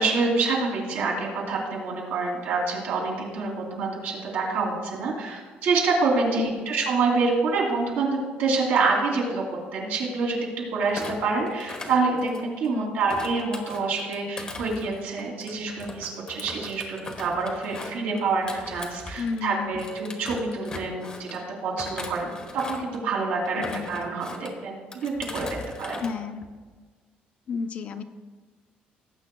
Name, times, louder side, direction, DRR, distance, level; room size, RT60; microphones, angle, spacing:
voice 1, 0.0-9.4 9.7-10.4 10.7-24.8 25.0-25.5 25.8-26.0, right 4 dB, 75° right, -1 dB, 2.9 m, -27 dB
voice 2, 6.3-6.7 12.7-13.0 19.2-19.8 23.6-23.9 26.0-26.4 27.5-28.0, left 5 dB, 45° left, 8 dB, 0.6 m, -31 dB
Thump thud, 10.9-12.7 13.1-19.4 19.8-21.4 21.8-23.0 23.4-24.5 24.9-26.1 26.4-26.8, left 3 dB, 25° left, 1.0 m, -39 dB
18.0 x 8.4 x 2.3 m, 1.4 s
cardioid pair, 160°, 3 cm